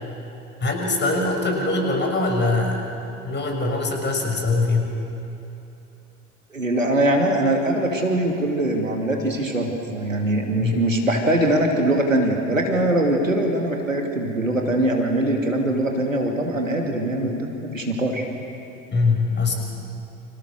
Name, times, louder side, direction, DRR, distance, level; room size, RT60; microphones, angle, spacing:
voice 1, 0.6-2.8 3.2-4.9 10.6-10.8 18.9-19.5, left 3 dB, 30° left, 2 dB, 6.6 m, -22 dB
voice 2, 6.5-18.3, right 1 dB, 90° right, 2 dB, 2.6 m, -22 dB
29.5 x 27.0 x 6.6 m, 2.9 s
figure-of-eight pair, 65°, 38 cm